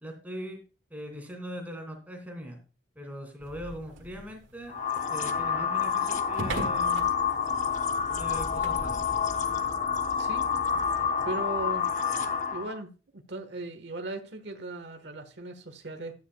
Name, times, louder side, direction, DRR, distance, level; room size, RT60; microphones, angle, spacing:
voice 1, 0.0-0.6 0.9-2.6 3.0-4.7 5.1-7.0 8.2-9.0, equal, 10° right, 3 dB, 2.5 m, -40 dB
sound 1, 3.4-9.7, right 1 dB, 80° right, 1.8 m, -41 dB
sound 2, 4.7-12.8, left 6 dB, 40° left, 0.9 m, -28 dB
voice 2, 10.2-11.9 12.5-16.1, right 2 dB, 60° right, 6 dB, 1.3 m, -38 dB
13.0 x 9.2 x 2.2 m, 0.33 s
head